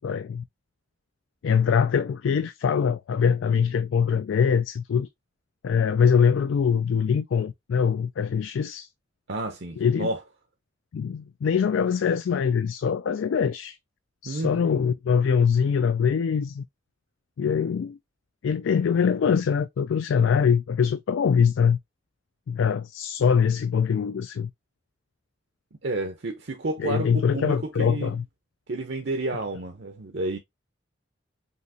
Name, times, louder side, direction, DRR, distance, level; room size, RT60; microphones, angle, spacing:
voice 1, 0.0-0.4 1.4-5.1 5.6-8.9 9.8-10.1 10.9-13.8 14.2-16.6 17.4-18.0 18.4-21.8 22.5-24.5 26.8-28.2, left 6 dB, 75° left, 0.3 m, -23 dB
voice 2, 9.3-10.2 14.2-14.7 25.8-28.2 28.7-30.4, right 2 dB, 60° right, 0.7 m, -30 dB
5.6 x 2.9 x 2.7 m
head